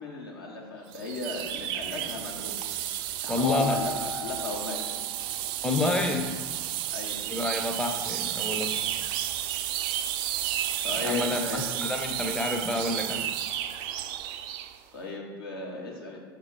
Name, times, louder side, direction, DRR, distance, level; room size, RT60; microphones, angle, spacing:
voice 1, 0.0-2.6 3.2-4.8 6.9-7.2 9.5-9.6 10.8-11.6 14.9-16.2, left 3 dB, 75° left, -2 dB, 1.2 m, -36 dB
sound 1, 0.9-14.8, right 12 dB, 45° right, 0.3 m, -32 dB
voice 2, 3.3-3.8 5.6-6.3 7.3-8.8 11.0-13.3, left 2 dB, 5° left, 3 dB, 0.6 m, -28 dB
Mallet percussion, 3.4-5.7, left 4 dB, 60° left, 0.5 m, -37 dB
6.0 x 3.6 x 4.7 m, 1.4 s
figure-of-eight pair, 80°, 12 cm